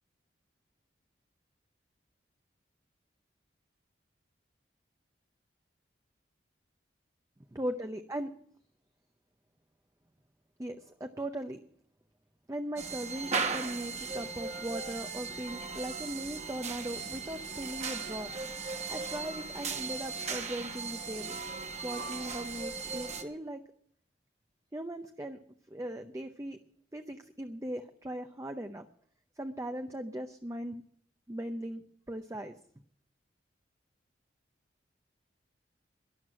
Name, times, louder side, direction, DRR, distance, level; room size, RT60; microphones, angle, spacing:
voice 1, 7.6-8.3 10.6-11.6 12.5-18.3 18.9-21.4 21.8-23.6 24.7-25.4 25.7-26.6 26.9-28.8 29.4-30.8 31.3-32.5, right 1 dB, 15° right, 6 dB, 0.6 m, -39 dB
sound 1, 12.8-23.2, right 4 dB, 35° right, 1.3 m, -37 dB
12.5 x 11.5 x 7.6 m, 0.64 s
head